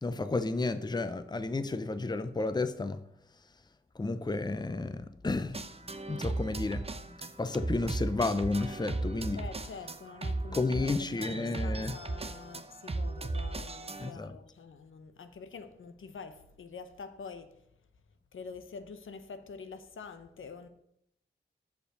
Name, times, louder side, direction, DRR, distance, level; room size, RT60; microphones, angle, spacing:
voice 1, 0.0-3.0 4.0-5.6 6.1-9.4 10.5-12.0 14.0-14.4, left 3 dB, 20° left, 0.6 m, -32 dB
sound 1, 5.5-14.1, right 2 dB, 30° right, 0.7 m, -36 dB
voice 2, 9.4-17.6 18.3-20.7, left 5 dB, 80° left, 0.8 m, -46 dB
6.7 x 5.2 x 6.6 m
cardioid pair, 55°, 20 cm